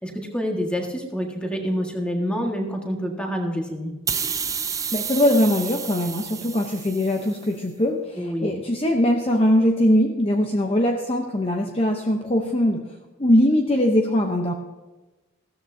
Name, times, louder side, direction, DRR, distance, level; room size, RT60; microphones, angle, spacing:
voice 1, 0.0-3.9 8.2-8.6, equal, 5° left, 1 dB, 1.7 m, -27 dB
sound 1, 4.1-7.5, right 6 dB, 15° right, 0.4 m, -30 dB
voice 2, 4.9-12.8 13.2-14.5, left 1 dB, 25° left, 2 dB, 0.8 m, -21 dB
15.5 x 13.5 x 2.8 m, 1.1 s
head